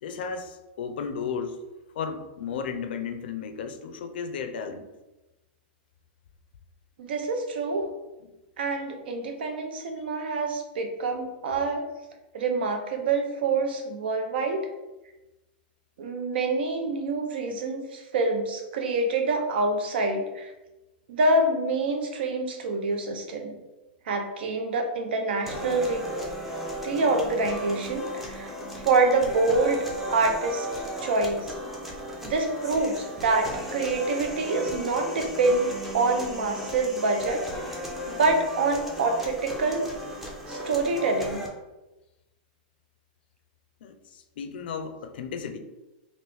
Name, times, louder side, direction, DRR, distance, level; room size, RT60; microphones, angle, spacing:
voice 1, 0.0-1.6 1.9-4.9 8.2-8.3 43.8-45.6, left 6 dB, 75° left, 7 dB, 0.4 m, -34 dB
voice 2, 7.0-7.9 8.6-11.9 12.3-14.6 16.0-20.5 21.1-23.6 24.1-26.1 26.8-29.8 30.1-31.5 32.2-37.5 38.1-39.8 40.5-41.4, right 3 dB, 85° right, 4 dB, 0.6 m, -26 dB
sound 1, 25.5-41.5, equal, 5° right, 0.4 m, -36 dB
3.1 x 2.5 x 3.3 m, 1.0 s
supercardioid pair, 170°, 5 cm